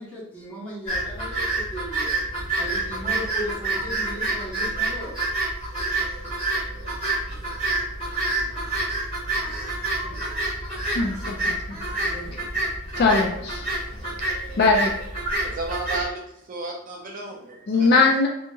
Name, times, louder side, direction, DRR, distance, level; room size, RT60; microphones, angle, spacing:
voice 1, 0.0-2.1 2.5-5.2 8.9-9.1 9.5-10.3 11.8-12.5, equal, 5° left, -9 dB, 0.9 m, -37 dB
sound 1, 0.9-16.1, right 2 dB, 25° left, 1.4 m, -28 dB
voice 2, 10.9-11.8 13.0-13.6 14.6-14.9 17.7-18.3, left 3 dB, 45° left, 1 dB, 0.3 m, -20 dB
voice 3, 13.6-14.1 14.5-14.6 15.2-18.0, right 3 dB, 35° right, 0 dB, 0.4 m, -33 dB
2.7 x 2.7 x 2.2 m, 0.84 s
head